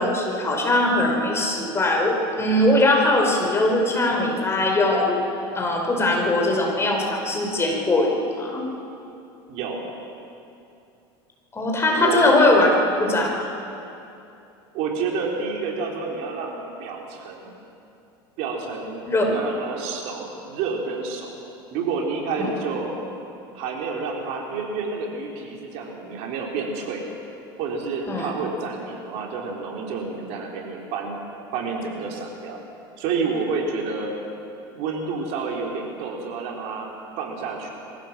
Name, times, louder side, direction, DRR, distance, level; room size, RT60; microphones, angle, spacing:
voice 1, 0.0-5.2 5.5-8.7 11.5-12.7 13.0-13.5 19.0-19.4 22.4-22.5 28.1-28.3, left 2 dB, 20° left, 1 dB, 4.6 m, -21 dB
voice 2, 9.5-9.8 11.9-12.3 14.7-17.5 18.4-21.4 21.7-22.9 23.5-27.0 27.6-31.2 31.5-32.6 33.0-34.1 34.7-36.9 37.2-37.7, right 4 dB, 60° right, 0 dB, 3.8 m, -29 dB
23.5 x 15.5 x 7.4 m, 2.7 s
supercardioid pair, 100°, 13 cm